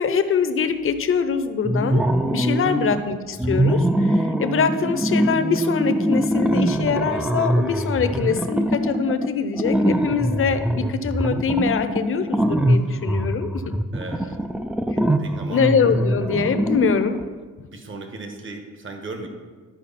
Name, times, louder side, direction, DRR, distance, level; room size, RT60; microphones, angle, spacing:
voice 1, 0.0-13.7 14.9-15.0 15.5-17.2 17.6-17.7, left 6 dB, 45° left, 10 dB, 0.7 m, -23 dB
sound 1, 1.6-3.0 3.4-17.3, right 1 dB, 5° right, 0.3 m, -23 dB
voice 2, 13.9-14.4 15.2-15.7 17.7-19.3, right 3 dB, 40° right, 4 dB, 1.4 m, -36 dB
12.0 x 5.0 x 4.2 m, 1.5 s
cardioid pair, 90°, 30 cm